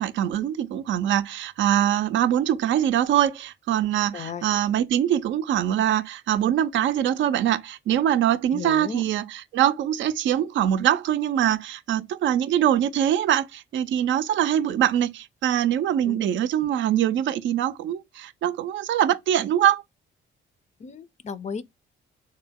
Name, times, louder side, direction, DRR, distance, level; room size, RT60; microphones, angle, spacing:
voice 1, 0.0-19.8, right 11 dB, 70° right, 0.4 m, -23 dB
voice 2, 4.1-4.5 8.5-9.0 16.0-16.2 20.8-21.6, left 6 dB, 35° left, 0.4 m, -35 dB
3.7 x 2.1 x 3.4 m
cardioid pair, 90°, 20 cm